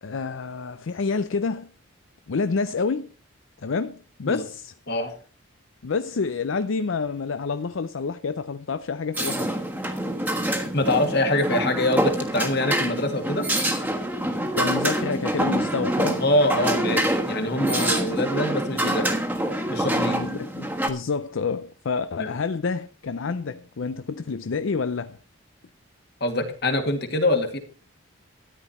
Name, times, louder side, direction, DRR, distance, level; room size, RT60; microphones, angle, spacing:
voice 1, 0.0-1.7 2.3-3.1 3.6-4.7 5.8-9.5 14.5-16.2 19.9-25.2, left 4 dB, 70° left, 0.5 m, -28 dB
sound 1, 9.1-20.9, right 1 dB, 10° right, 1.3 m, -26 dB
voice 2, 10.7-13.5 16.2-19.1 19.7-20.2 22.2-22.3 26.2-27.6, left 1 dB, 50° left, 2.1 m, -24 dB
13.5 x 10.0 x 4.3 m
head